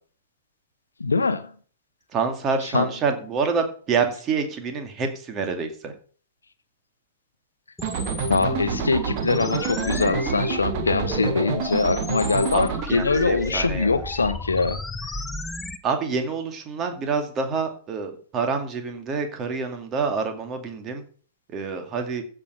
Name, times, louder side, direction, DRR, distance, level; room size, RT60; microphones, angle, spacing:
voice 1, 1.0-1.5 2.7-2.9 8.3-15.1, left 4 dB, 75° left, 1.0 m, -23 dB
voice 2, 2.1-5.9 12.5-14.0 15.8-21.0 21.5-22.2, right 5 dB, 25° right, 2.2 m, -27 dB
sound 1, 7.8-15.8, left 2 dB, 10° left, 0.8 m, -33 dB
sound 2, 7.8-12.9, right 6 dB, 45° right, 1.4 m, -28 dB
15.0 x 5.2 x 5.6 m
figure-of-eight pair, 105°, 0 cm